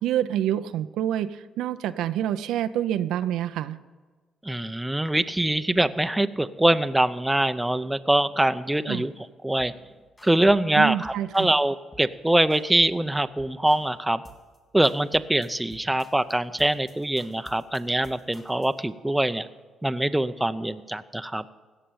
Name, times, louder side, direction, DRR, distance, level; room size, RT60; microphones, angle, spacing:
voice 1, 0.0-1.3 1.6-3.8 8.9-9.1 10.8-11.5, right 11 dB, 80° right, 11 dB, 0.5 m, -27 dB
voice 2, 4.4-9.1 9.4-9.7 10.2-14.2 14.7-19.5 19.8-21.4, right 1 dB, 10° right, 11 dB, 0.6 m, -23 dB
sound 1, 9.6-9.8 10.2-10.7 11.0-11.6 11.9-12.2 12.5-13.0 13.4-13.9 14.2-14.6 14.8-18.8, equal, 25° left, 3.2 m, -52 dB
16.5 x 6.8 x 8.6 m, 1.3 s
supercardioid pair, 70°, 0 cm